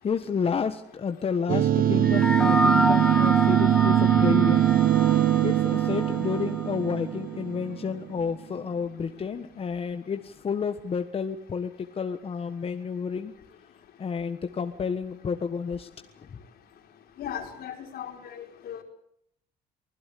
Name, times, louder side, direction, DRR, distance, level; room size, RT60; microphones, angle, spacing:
voice 1, 0.0-4.7 5.4-13.3 14.0-15.9 16.3-16.4, left 6 dB, 35° left, 7 dB, 1.4 m, -30 dB
sound 1, 1.5-8.1, right 12 dB, 60° right, 1.0 m, -22 dB
sound 2, 2.0-6.7, left 1 dB, 5° left, 1.4 m, -28 dB
voice 2, 17.2-18.8, left 9 dB, 65° left, 4 dB, 4.6 m, -37 dB
24.5 x 16.5 x 8.5 m, 0.72 s
cardioid pair, 110°, 17 cm